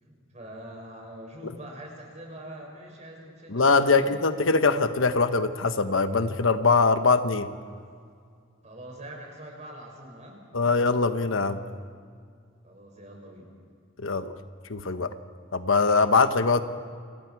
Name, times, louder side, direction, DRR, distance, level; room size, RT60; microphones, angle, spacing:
voice 1, 0.0-4.2 8.6-10.8 12.6-13.5, right 1 dB, 35° right, 0 dB, 6.3 m, -44 dB
voice 2, 3.5-7.5 10.5-11.6 14.0-14.3 14.7-15.1 15.5-16.6, left 4 dB, 75° left, 9 dB, 1.1 m, -22 dB
30.0 x 25.5 x 4.8 m, 2.2 s
head